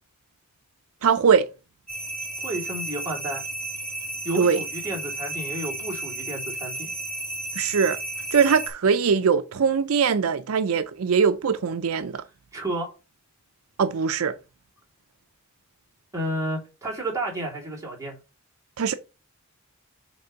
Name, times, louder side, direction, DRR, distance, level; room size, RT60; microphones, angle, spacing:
voice 1, 1.0-1.5 4.4-4.6 7.6-8.0 8.3-12.2 13.8-14.3 18.8-18.9, right 6 dB, 75° right, 0.5 m, -21 dB
sound 1, 1.9-8.7, right 2 dB, 5° left, 2.7 m, -33 dB
voice 2, 2.4-3.4 4.2-6.9 12.5-12.9 16.1-18.1, right 1 dB, 15° right, 3.2 m, -31 dB
6.9 x 3.6 x 5.1 m
head